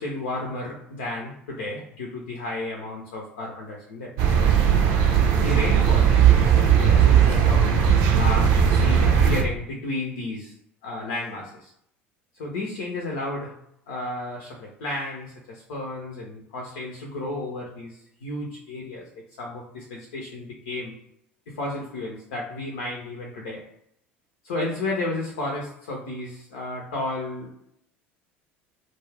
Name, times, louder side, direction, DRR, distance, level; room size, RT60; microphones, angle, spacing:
voice 1, 0.0-4.5 5.4-10.5 10.8-11.7 12.4-13.6 13.9-19.1 19.4-21.0 21.5-23.6 24.4-27.7, left 2 dB, 70° left, -1 dB, 0.6 m, -33 dB
sound 1, 4.2-9.4, right 8 dB, 60° right, 0.5 m, -18 dB
2.3 x 2.1 x 3.3 m, 0.73 s
figure-of-eight pair, 65°, 7 cm